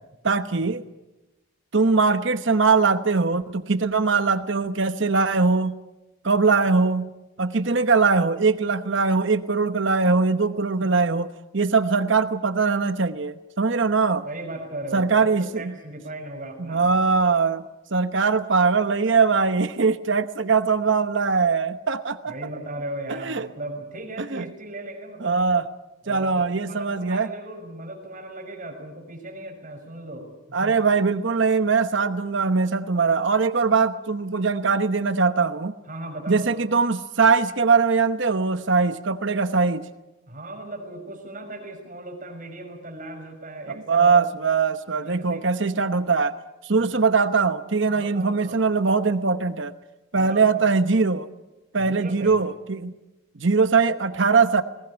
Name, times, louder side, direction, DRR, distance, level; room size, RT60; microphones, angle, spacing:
voice 1, 0.2-0.8 1.7-5.8 6.2-7.1 7.4-14.3 14.9-15.7 16.6-17.6 17.9-22.3 23.2-23.5 24.3-24.5 25.2-25.6 26.1-27.3 30.5-35.7 36.3-39.9 43.7-46.4 46.6-49.7 50.1-51.3 51.7-53.0 53.4-54.6, right 4 dB, 60° right, 11 dB, 1.0 m, -21 dB
voice 2, 14.2-17.0 22.3-25.5 26.0-30.7 35.9-36.6 40.3-44.3 45.0-45.4 46.8-46.9 47.9-48.6 50.1-50.5 51.8-52.4, right 1 dB, 40° right, 2 dB, 5.9 m, -37 dB
21.0 x 19.0 x 9.9 m, 1.0 s
head